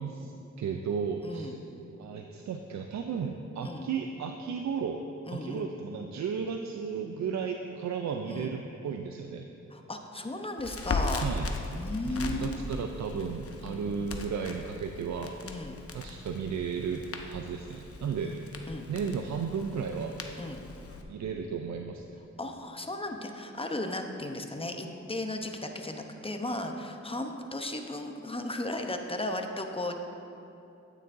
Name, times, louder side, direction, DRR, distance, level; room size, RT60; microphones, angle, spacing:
voice 1, 0.0-1.6 2.0-5.0 5.3-9.5 11.2-11.5 12.1-15.4 15.9-18.4 18.6-20.1 21.1-22.0, right 6 dB, 70° right, 4 dB, 0.5 m, -34 dB
voice 2, 1.2-1.6 3.6-3.9 5.2-5.7 8.3-8.5 9.7-11.2 11.8-12.6 13.6-13.9 15.4-15.8 18.2-18.4 18.7-18.9 20.4-20.6 22.4-30.0, left 2 dB, 20° left, 4 dB, 0.8 m, -35 dB
Crackle, 10.6-21.0, left 3 dB, 50° left, 0.8 m, -38 dB
9.2 x 9.2 x 2.6 m, 2.8 s
cardioid pair, 50°, 29 cm